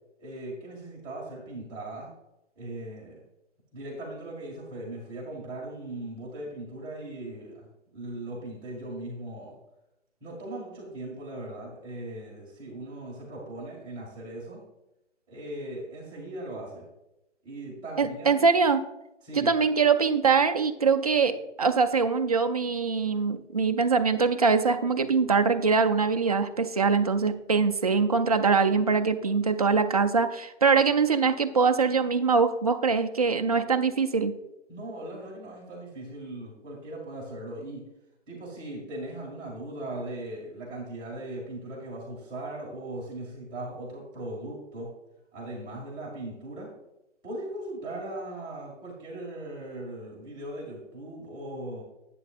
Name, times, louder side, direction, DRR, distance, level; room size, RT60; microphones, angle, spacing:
voice 1, 0.2-2.1 2.6-3.2 3.7-9.6 10.2-14.6 15.3-16.9 17.4-18.4 19.2-19.5 34.7-37.8 38.3-44.9 45.3-46.7 47.2-51.8, right 1 dB, 10° right, -5 dB, 1.9 m, -39 dB
voice 2, 18.0-18.8 19.4-34.3, right 5 dB, 35° right, 7 dB, 0.4 m, -23 dB
11.0 x 8.4 x 2.5 m, 0.90 s
hypercardioid pair, 155°, 36 cm